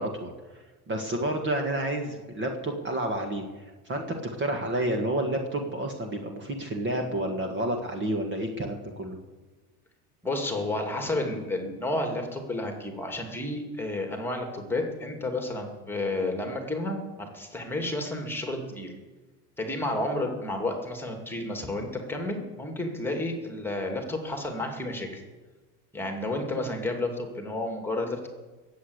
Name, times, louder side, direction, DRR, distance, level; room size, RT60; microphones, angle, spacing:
voice 1, 0.0-4.0 4.4-9.2, right 1 dB, 25° right, 4 dB, 1.7 m, -30 dB
voice 2, 10.2-18.9 19.6-25.2 25.9-28.3, left 2 dB, 5° left, 3 dB, 2.4 m, -31 dB
20.5 x 8.4 x 8.0 m, 1.3 s
supercardioid pair, 140°, 42 cm